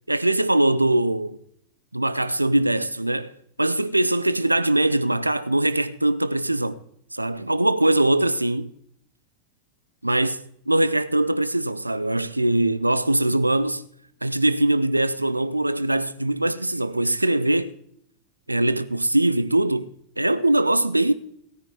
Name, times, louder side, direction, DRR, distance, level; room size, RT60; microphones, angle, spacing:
voice 1, 0.1-1.4 1.9-3.3 3.6-6.8 7.1-8.7 10.0-13.8 14.2-17.7 18.5-19.9 20.2-21.1, right 1 dB, 85° right, 0.4 m, -22 dB
18.0 x 9.7 x 3.6 m
figure-of-eight pair, 90°, 0 cm